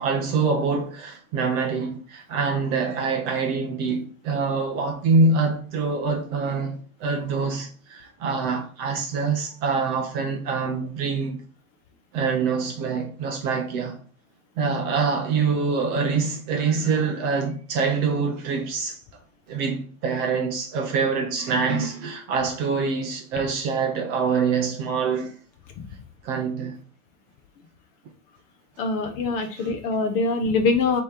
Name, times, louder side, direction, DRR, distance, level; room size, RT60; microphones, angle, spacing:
voice 1, 0.0-11.4 12.1-14.0 14.6-19.0 19.5-25.3 26.2-26.8 29.4-29.7, right 4 dB, 20° right, 0.5 m, -25 dB
voice 2, 28.8-31.0, left 3 dB, 25° left, 0.5 m, -23 dB
4.5 x 3.0 x 3.4 m
hypercardioid pair, 130°, 44 cm